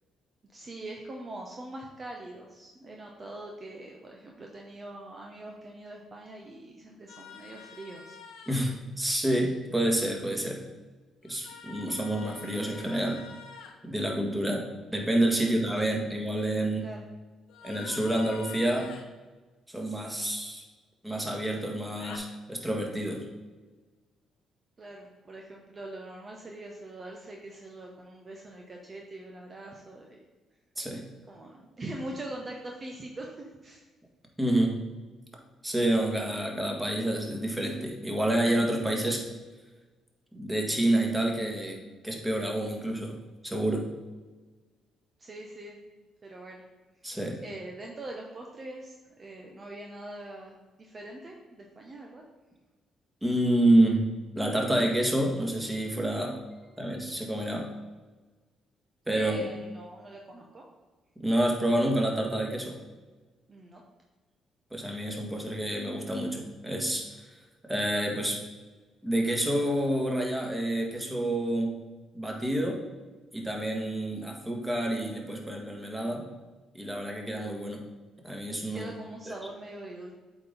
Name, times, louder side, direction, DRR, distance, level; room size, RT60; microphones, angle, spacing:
voice 1, 0.5-8.2 15.4-16.0 16.8-17.0 24.8-30.2 31.3-33.9 45.2-45.8 46.2-46.7 47.4-52.2 59.1-60.6 63.5-63.8 78.7-80.1, right 1 dB, 40° right, 0 dB, 1.0 m, -43 dB
sound 1, 7.1-8.7 11.2-13.7 17.5-19.1 21.9-22.2, left 6 dB, 70° left, 0.8 m, -47 dB
voice 2, 8.5-10.6 11.2-13.2 13.8-14.6 14.9-16.8 17.6-18.9 19.7-20.6 21.0-23.2 30.8-31.0 34.4-34.8 35.6-39.3 40.3-43.1 43.4-43.9 47.0-47.4 53.2-54.0 54.4-56.4 56.8-57.7 59.1-59.5 61.2-62.8 64.7-67.2 67.6-68.4 69.0-71.8 72.1-72.8 73.3-76.2 76.7-77.8 78.2-78.9 79.3-79.4, right 1 dB, 10° right, 0 dB, 1.8 m, -28 dB
8.0 x 4.1 x 4.0 m, 1.3 s
hypercardioid pair, 50°, 0 cm